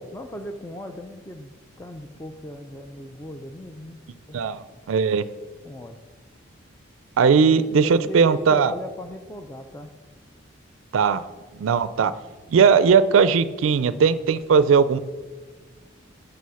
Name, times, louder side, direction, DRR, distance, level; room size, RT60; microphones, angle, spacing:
voice 1, 0.1-4.0 4.3-4.8 5.6-6.0 7.8-9.9, equal, 10° left, 6 dB, 0.4 m, -37 dB
voice 2, 4.3-5.2 7.2-8.7 10.9-11.2 11.6-12.1 12.5-15.0, right 6 dB, 85° right, 15 dB, 0.4 m, -18 dB
7.1 x 6.3 x 6.8 m, 1.4 s
head